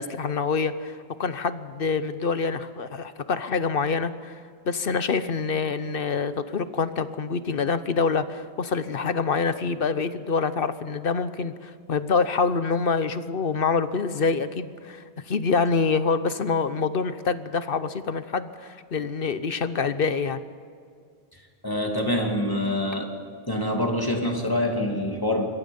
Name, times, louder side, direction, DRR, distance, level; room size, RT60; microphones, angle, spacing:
voice 1, 0.0-4.4 4.7-20.4, left 5 dB, 55° left, 12 dB, 1.0 m, -26 dB
voice 2, 21.3-23.1 23.5-25.4, left 1 dB, 20° left, 1 dB, 2.5 m, -26 dB
25.5 x 22.0 x 5.4 m, 2.2 s
omnidirectional pair, 1.1 m